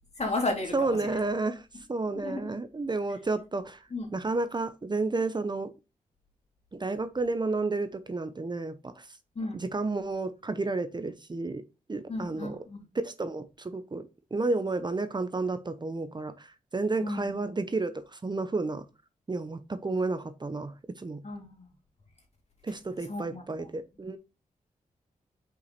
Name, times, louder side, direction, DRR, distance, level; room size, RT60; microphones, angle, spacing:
voice 1, 0.1-1.0 2.1-2.5 3.9-4.1 9.3-9.6 12.1-12.8 17.0-17.3 21.2-21.7 23.1-23.7, left 2 dB, 50° left, 1 dB, 2.8 m, -33 dB
voice 2, 0.7-3.8 4.1-5.7 6.7-9.1 9.5-11.6 11.9-12.6 12.9-18.8 19.3-21.2 22.6-24.2, right 3 dB, 30° right, 11 dB, 0.7 m, -31 dB
5.7 x 4.9 x 4.1 m, 0.28 s
cardioid pair, 50°, 15 cm